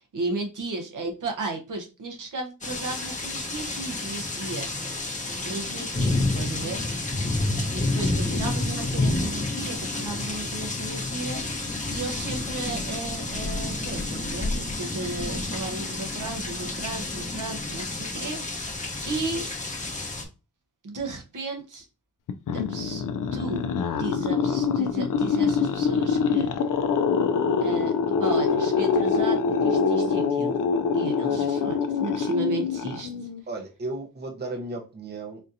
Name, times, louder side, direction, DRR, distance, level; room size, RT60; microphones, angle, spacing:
voice 1, 0.0-4.7 5.4-6.8 7.7-19.4 20.8-21.9 22.5-23.0 23.3-26.5 27.6-27.9 28.2-30.6 30.9-33.3, right 2 dB, 70° right, 3 dB, 1.0 m, -34 dB
sound 1, 2.6-20.2, left 2 dB, 25° left, 0.8 m, -29 dB
sound 2, 22.3-33.4, left 5 dB, 75° left, 0.5 m, -24 dB
voice 2, 33.5-35.4, right 2 dB, 30° right, 3 dB, 0.7 m, -35 dB
4.2 x 2.7 x 2.5 m, 0.30 s
wide cardioid pair, 100°, 32 cm